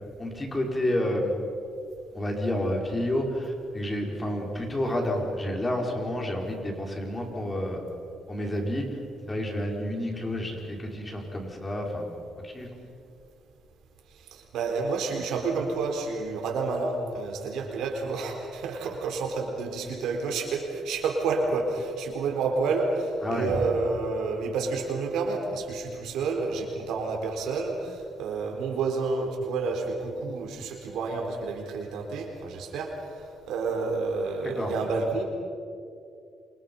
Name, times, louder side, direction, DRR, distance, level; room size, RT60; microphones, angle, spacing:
voice 1, 0.2-1.3 2.1-7.8 8.3-9.0 9.3-12.1 12.4-12.7 23.2-23.6 34.4-34.7, left 1 dB, 20° left, 1 dB, 5.1 m, -29 dB
voice 2, 14.1-35.2, right 4 dB, 85° right, 2 dB, 4.3 m, -29 dB
28.0 x 26.0 x 5.6 m, 2.5 s
cardioid pair, 90°, 0 cm